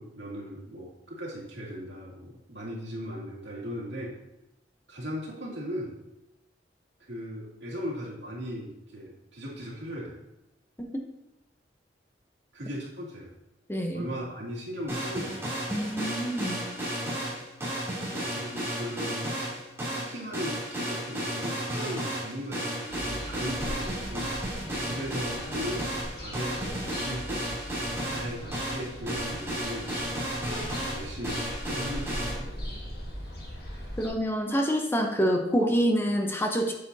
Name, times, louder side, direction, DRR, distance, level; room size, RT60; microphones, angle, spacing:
voice 1, 0.0-4.2 4.9-6.0 7.1-10.2 12.5-13.3 13.9-15.4 18.3-19.3 19.9-24.3 24.8-27.5 28.0-29.9 30.4-32.5, equal, 75° right, -4 dB, 2.6 m, -38 dB
voice 2, 13.7-14.1 15.7-16.6 34.0-36.7, equal, 15° left, 2 dB, 0.7 m, -26 dB
sound 1, 14.9-32.3, equal, 15° right, 2.8 m, -33 dB
sound 2, 22.9-34.1, equal, 60° left, 1.8 m, -40 dB
8.4 x 7.7 x 2.7 m, 0.92 s
head